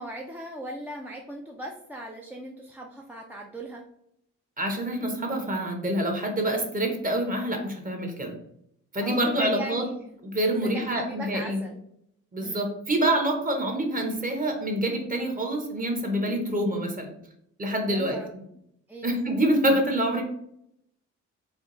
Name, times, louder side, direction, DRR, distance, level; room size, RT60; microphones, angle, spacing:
voice 1, 0.0-3.8 9.0-10.2 10.5-11.8 12.4-12.7 16.4-16.5 17.9-18.3 18.9-19.1, right 1 dB, 5° right, -1 dB, 0.4 m, -38 dB
voice 2, 4.6-8.3 8.9-9.9 10.2-11.6 12.3-17.1 17.6-18.2 19.0-20.2, right 1 dB, 25° right, 3 dB, 1.0 m, -26 dB
3.6 x 2.3 x 3.8 m, 0.73 s
cardioid pair, 90°, 31 cm